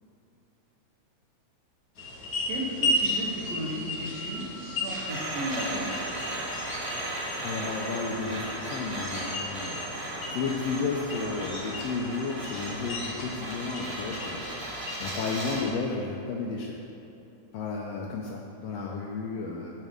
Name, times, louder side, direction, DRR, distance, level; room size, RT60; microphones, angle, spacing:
sound 1, 1.9-15.7, left 1 dB, 60° left, 1.0 m, -35 dB
voice 1, 2.5-5.9, right 1 dB, 70° right, -2 dB, 2.1 m, -35 dB
sound 2, 5.1-15.7, right 1 dB, 40° right, 1.8 m, -36 dB
voice 2, 7.4-14.7 15.0-16.8 17.5-19.7, left 4 dB, 80° left, -1 dB, 1.5 m, -33 dB
8.9 x 3.3 x 6.4 m, 2.9 s
omnidirectional pair, 3.3 m